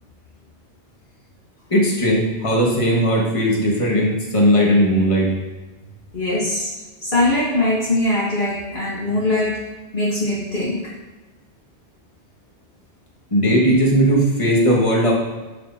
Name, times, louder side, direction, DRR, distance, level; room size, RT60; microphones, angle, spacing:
voice 1, 1.7-5.3 13.3-15.1, equal, 30° left, -3 dB, 1.7 m, -17 dB
voice 2, 6.1-6.7 7.0-9.6 9.9-10.9, left 1 dB, 50° left, -6 dB, 1.2 m, -21 dB
10.5 x 6.7 x 2.7 m, 1.2 s
omnidirectional pair, 1.1 m